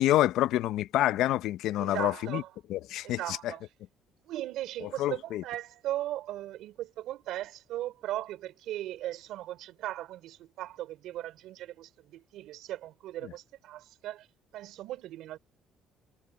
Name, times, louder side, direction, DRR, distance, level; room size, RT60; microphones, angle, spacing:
voice 1, 0.0-2.4 2.7-3.5 4.8-5.4 13.2-13.3, left 14 dB, 75° left, 0.7 m, -27 dB
voice 2, 1.8-2.5 3.0-3.6 4.2-14.3 14.5-15.4, right 14 dB, 75° right, 3.7 m, -38 dB
cardioid pair, 120°, 0 cm